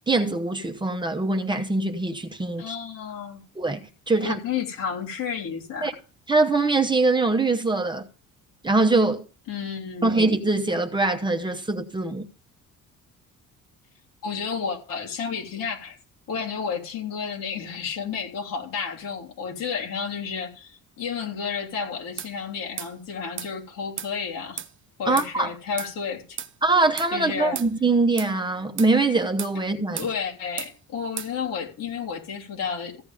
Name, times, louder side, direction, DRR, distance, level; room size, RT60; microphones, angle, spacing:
voice 1, 0.1-2.7 3.6-4.4 5.8-5.9 6.3-8.1 8.6-9.2 10.0-12.3 25.1-25.5 26.6-30.1, right 3 dB, 15° right, 0.9 m, -23 dB
voice 2, 2.6-3.4 4.2-5.9 9.5-10.2 14.2-16.0 16.3-24.6 25.0-26.4 27.1-27.6 29.9-33.0, left 6 dB, 80° left, 3.3 m, -31 dB
sound 1, 22.2-22.3 22.8-22.9 23.4-23.5 24.0-24.1 24.6-24.7 25.2-25.3 25.8-25.9 26.4-26.5 27.0-27.1 27.5-27.7 28.2-28.3 28.8-28.9 29.4-29.6 30.0-30.1 30.6-30.7 31.2-31.3, right 9 dB, 35° right, 0.7 m, -34 dB
15.0 x 8.8 x 3.5 m
cardioid pair, 120°, 33 cm